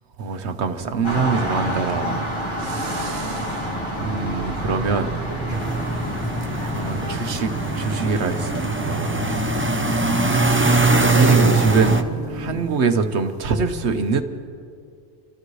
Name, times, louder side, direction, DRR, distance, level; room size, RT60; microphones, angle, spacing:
voice 1, 0.2-3.7 4.0-5.2 6.7-7.5 7.7-9.4 11.1-14.2, right 4 dB, 70° right, 8 dB, 1.3 m, -24 dB
sound 1, 0.8-12.6, left 1 dB, 60° left, 2.8 m, -32 dB
sound 2, 1.0-9.0, equal, 25° left, 1.8 m, -29 dB
sound 3, 5.5-12.0, right 3 dB, 15° right, 0.5 m, -21 dB
voice 2, 5.5-6.2 6.5-7.4, right 2 dB, 45° right, -2 dB, 1.2 m, -40 dB
29.0 x 14.5 x 3.2 m, 2.4 s
omnidirectional pair, 1.2 m